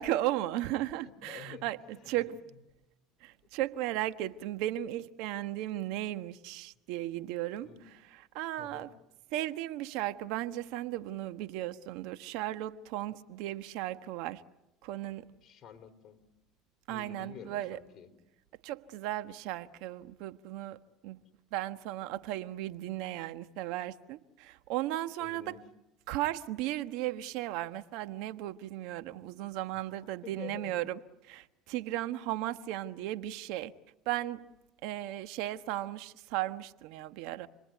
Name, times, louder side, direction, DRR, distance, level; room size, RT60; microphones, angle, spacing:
voice 1, 0.0-2.4 3.2-7.7 8.3-8.9 9.3-14.4 14.8-15.3 16.9-17.8 18.6-21.2 21.5-25.6 26.1-31.0 31.3-33.7 34.0-34.5 34.8-37.5, right 14 dB, 75° right, 1.2 m, -35 dB
voice 2, 0.9-2.3 7.6-7.8 8.6-8.9 15.4-16.2 16.9-18.1 25.2-25.6 29.9-30.8 33.0-33.1, left 7 dB, 40° left, 4.0 m, -49 dB
29.5 x 21.5 x 9.3 m
supercardioid pair, 105°, 0 cm